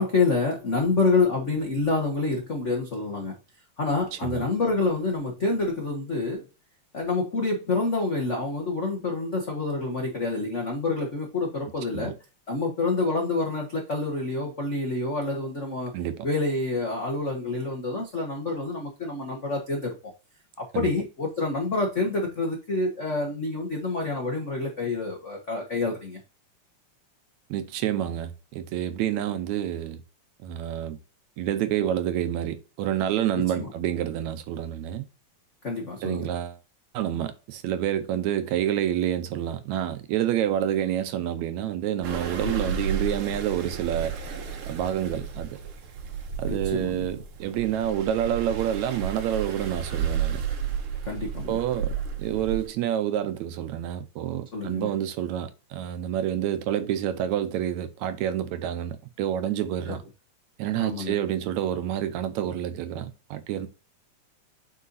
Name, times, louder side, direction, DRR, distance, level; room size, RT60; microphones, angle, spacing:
voice 1, 0.0-3.3 3.8-6.4 6.9-12.1 12.5-15.9 16.2-19.9 20.6-26.2 33.5-33.7 35.6-36.3 42.4-42.7 46.5-47.0 51.1-51.6 54.5-54.9 59.9-60.0 60.8-61.2, left 3 dB, 70° left, 0.7 m, -27 dB
voice 2, 4.1-4.5 11.9-12.1 15.9-16.3 20.7-20.9 27.5-30.0 30.4-31.0 31.4-35.1 36.0-36.6 36.9-44.1 44.7-45.6 46.4-50.4 51.5-60.0 60.6-63.7, right 11 dB, 80° right, 1.9 m, -28 dB
sound 1, 42.0-52.7, right 7 dB, 60° right, 1.5 m, -32 dB
8.3 x 4.7 x 2.6 m
omnidirectional pair, 3.5 m